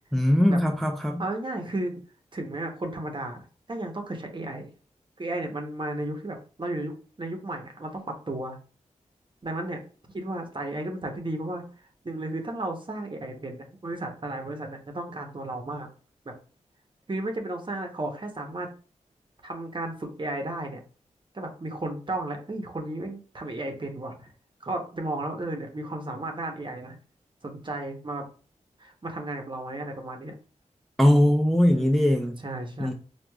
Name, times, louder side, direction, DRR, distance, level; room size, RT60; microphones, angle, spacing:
voice 1, 0.1-1.2 31.0-32.3 32.8-32.9, equal, ahead, 0.5 m, -20 dB
voice 2, 1.2-2.0 2.3-4.7 5.2-8.6 9.4-9.8 10.1-11.6 12.0-15.9 17.1-18.7 19.4-20.8 21.3-24.3 24.6-27.0 27.4-28.2 28.8-30.3 31.7-32.9, right 2 dB, 35° right, 0.9 m, -34 dB
4.6 x 2.3 x 2.3 m
cardioid pair, 45°, 14 cm